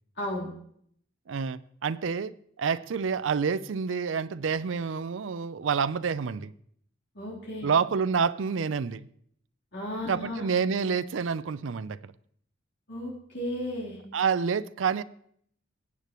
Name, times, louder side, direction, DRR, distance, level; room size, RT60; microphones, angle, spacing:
voice 1, 0.2-0.5 7.1-7.7 9.7-10.5 12.9-14.0, left 1 dB, 60° left, 3.6 m, -34 dB
voice 2, 1.3-6.5 7.6-9.1 10.1-12.1 14.1-15.0, right 6 dB, 70° right, 0.5 m, -28 dB
18.0 x 8.3 x 3.1 m
head